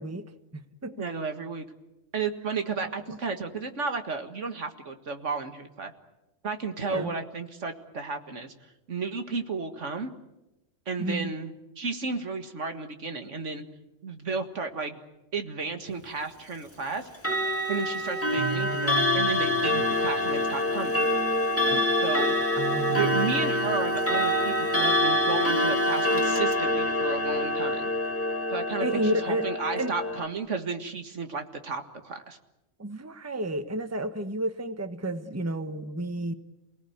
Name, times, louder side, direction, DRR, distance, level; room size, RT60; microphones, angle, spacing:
voice 1, 0.0-1.0 3.1-3.2 6.8-7.1 11.0-11.3 18.4-19.7 21.7-21.9 22.5-23.7 28.8-29.5 29.8-29.9 32.8-36.3, right 2 dB, 15° right, 9 dB, 1.1 m, -32 dB
voice 2, 1.0-1.6 2.1-5.9 6.4-8.5 8.9-10.1 10.9-13.6 14.0-15.0 15.3-17.1 17.7-21.0 22.0-22.3 22.9-27.9 28.5-32.4, right 4 dB, 75° right, 7 dB, 2.1 m, -33 dB
Clock, 17.1-30.3, left 1 dB, 10° left, 2.1 m, -26 dB
28.5 x 18.5 x 9.5 m, 0.97 s
omnidirectional pair, 1.3 m